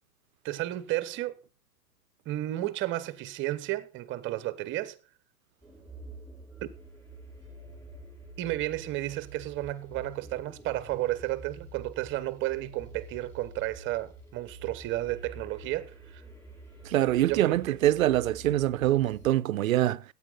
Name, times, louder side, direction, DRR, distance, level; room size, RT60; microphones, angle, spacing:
voice 1, 0.4-1.4 2.3-5.0 6.6-6.7 8.4-16.2 17.3-17.8, right 16 dB, 25° right, 1.0 m, -32 dB
sound 1, 5.6-19.3, right 2 dB, 5° left, 4.9 m, -48 dB
voice 2, 16.8-20.0, right 14 dB, 60° right, 0.7 m, -24 dB
15.0 x 8.8 x 4.0 m
hypercardioid pair, 115°, 47 cm